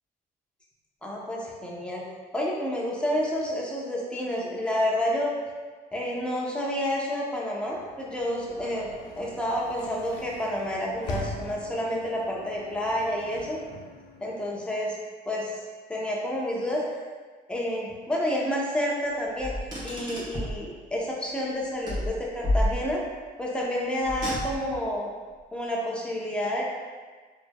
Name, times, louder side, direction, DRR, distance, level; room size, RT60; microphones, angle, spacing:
voice 1, 1.0-2.0 2.3-5.3 5.9-8.9 9.2-13.6 14.2-15.0 15.3-15.5 15.9-16.9 17.5-19.5 19.8-23.0 23.4-25.1 25.5-26.6, left 1 dB, 5° left, -4 dB, 0.7 m, -29 dB
Sliding door / Slam, 7.7-14.7, left 2 dB, 75° left, 0.6 m, -42 dB
Car, 19.4-20.6 21.9-23.2 24.0-24.9, left 1 dB, 25° right, 1.2 m, -30 dB
4.1 x 3.0 x 2.2 m, 1.4 s
cardioid pair, 110°, 17 cm